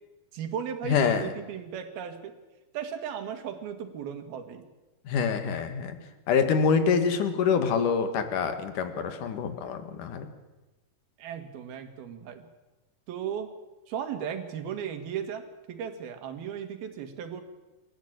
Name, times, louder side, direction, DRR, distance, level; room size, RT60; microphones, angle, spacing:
voice 1, 0.3-2.4 2.7-4.7 11.2-12.5 13.1-13.5 13.9-17.4, right 8 dB, 80° right, 7 dB, 3.8 m, -36 dB
voice 2, 0.9-1.2 5.1-6.0 6.3-10.3, left 6 dB, 60° left, 8 dB, 3.1 m, -26 dB
27.5 x 13.5 x 8.9 m, 1.1 s
omnidirectional pair, 4.3 m